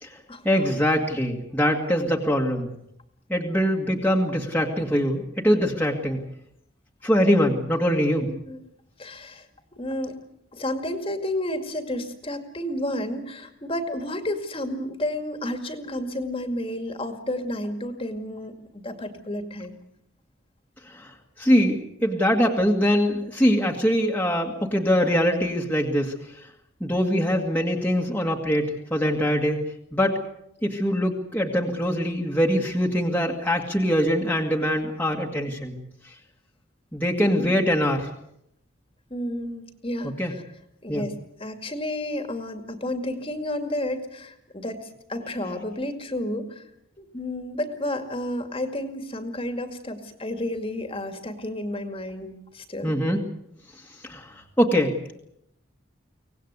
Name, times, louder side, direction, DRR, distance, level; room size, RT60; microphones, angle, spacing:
voice 1, 0.4-2.7 3.3-6.2 7.0-8.3 20.9-26.1 26.8-29.6 29.9-30.2 30.6-35.7 36.1-36.2 36.9-38.1 40.2-40.3 40.9-41.1 52.8-53.2 54.0-55.0, equal, 10° left, 0 dB, 1.9 m, -23 dB
voice 2, 8.2-8.6 9.0-9.5 9.7-10.2 10.5-19.8 37.4-37.5 39.1-40.4 40.8-46.6 47.0-53.0, left 1 dB, 25° left, 7 dB, 2.2 m, -31 dB
24.0 x 19.0 x 8.2 m, 0.78 s
head